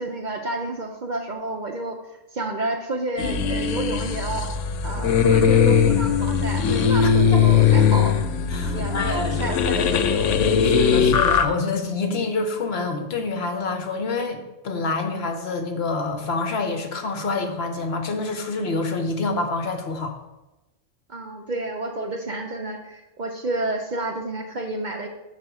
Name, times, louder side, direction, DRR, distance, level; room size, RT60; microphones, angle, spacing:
voice 1, 0.0-2.0 2.3-4.5 4.8-8.2 8.7-10.3 21.1-25.1, right 2 dB, 50° right, 3 dB, 0.7 m, -30 dB
sound 1, 3.2-11.5, left 7 dB, 85° left, 0.9 m, -19 dB
voice 2, 7.0-7.4 8.5-9.4 10.4-14.4 14.6-20.2, left 3 dB, 60° left, 6 dB, 1.0 m, -27 dB
6.5 x 4.3 x 5.9 m, 1.0 s
omnidirectional pair, 1.3 m